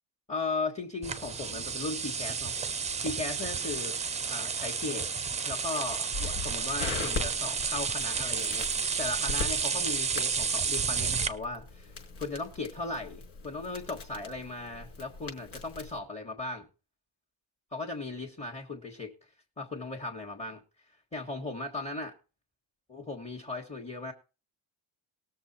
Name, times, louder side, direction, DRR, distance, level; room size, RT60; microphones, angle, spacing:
voice 1, 0.3-2.5 3.0-3.9 4.3-5.1 5.5-11.9 12.2-16.7 17.7-19.1 19.6-20.6 21.1-22.1 22.9-24.1, left 3 dB, 15° left, 0 dB, 1.4 m, -37 dB
sound 1, 1.0-11.3, right 5 dB, 15° right, 0.5 m, -31 dB
Crackle, 6.1-16.0, left 4 dB, 85° left, 5.5 m, -40 dB
19.5 x 6.8 x 4.2 m, 0.32 s
cardioid pair, 180°, 49 cm